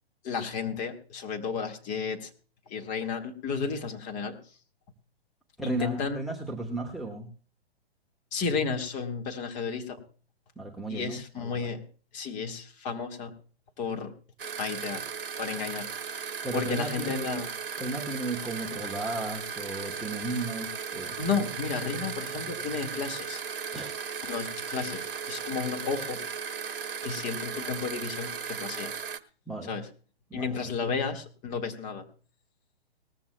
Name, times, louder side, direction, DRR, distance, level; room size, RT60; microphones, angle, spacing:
voice 1, 0.2-2.3 2.7-4.4 5.6-6.2 8.3-10.0 10.9-11.8 12.1-13.3 13.8-14.1 14.6-15.0 15.4-15.9 16.1-17.5 21.2-23.4 24.3-26.2 27.0-28.9 29.7-29.9 30.3-32.1, left 5 dB, 25° left, 3 dB, 1.8 m, -32 dB
voice 2, 5.6-7.3 10.6-11.7 16.4-17.4 17.8-21.2 23.7-23.9 29.5-29.7 30.3-30.7, right 2 dB, ahead, 0 dB, 1.0 m, -35 dB
sound 1, 14.4-29.2, right 6 dB, 60° right, 1.0 m, -36 dB
19.5 x 14.5 x 2.2 m, 0.39 s
figure-of-eight pair, 125°, 31 cm